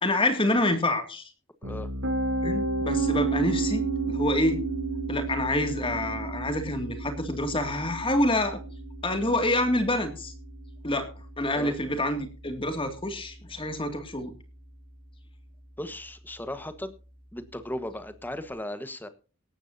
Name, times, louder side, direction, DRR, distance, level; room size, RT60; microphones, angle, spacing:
voice 1, 0.0-1.3 2.4-4.6 5.1-8.6 9.0-10.3 10.8-11.1 11.4-14.3, left 1 dB, 25° left, 7 dB, 2.2 m, -27 dB
Piano, 1.6-13.5, right 3 dB, 65° right, 7.5 m, -32 dB
voice 2, 15.8-16.9 17.3-19.1, left 1 dB, 10° left, 11 dB, 1.3 m, -36 dB
18.0 x 13.5 x 2.7 m, 0.35 s
head